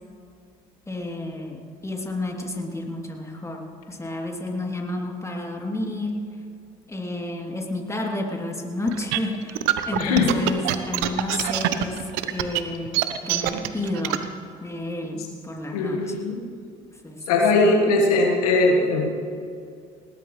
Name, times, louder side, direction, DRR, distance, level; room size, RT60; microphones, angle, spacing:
voice 1, 0.9-6.2 6.9-12.0 12.3-14.2 14.6-16.1 17.0-17.7, left 1 dB, 15° left, 0 dB, 3.1 m, -31 dB
sound 1, 8.9-14.2, right 14 dB, 80° right, 0.9 m, -24 dB
voice 2, 10.0-10.3 15.7-16.4 17.3-19.1, left 3 dB, 90° left, 0 dB, 1.7 m, -20 dB
20.0 x 18.5 x 3.3 m, 2.4 s
hypercardioid pair, 60°, 19 cm